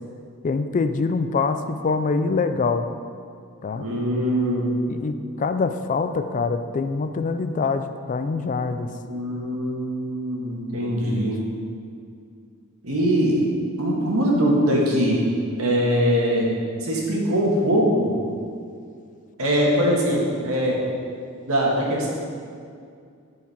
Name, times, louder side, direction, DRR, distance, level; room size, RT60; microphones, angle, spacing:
voice 1, 0.4-2.9 3.6-3.9 4.9-8.9 11.1-11.3, left 4 dB, 35° left, 9 dB, 0.3 m, -24 dB
voice 2, 3.8-4.7 9.1-11.4 12.8-13.3 13.8-15.2 15.6-16.5 16.8-18.1 19.4-20.8 21.5-22.1, equal, 85° right, -3 dB, 1.6 m, -22 dB
10.5 x 4.7 x 4.3 m, 2.3 s
head